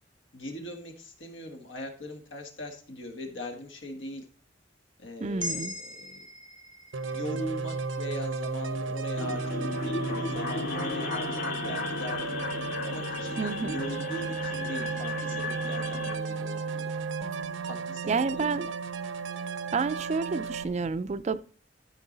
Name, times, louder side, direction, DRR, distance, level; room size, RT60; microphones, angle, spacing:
voice 1, 0.3-4.3 5.0-6.3 7.1-12.4 12.8-16.9 17.6-18.7, left 1 dB, 75° left, 1.7 m, -40 dB
voice 2, 5.2-5.7 13.4-13.8 18.1-18.7 19.7-21.4, right 4 dB, 35° right, 0.4 m, -29 dB
sound 1, 5.4-9.7, left 1 dB, 25° left, 1.1 m, -42 dB
sound 2, 6.9-20.6, right 4 dB, 90° right, 0.7 m, -34 dB
sound 3, 9.2-16.1, left 3 dB, 50° left, 1.9 m, -35 dB
13.0 x 4.7 x 3.9 m
head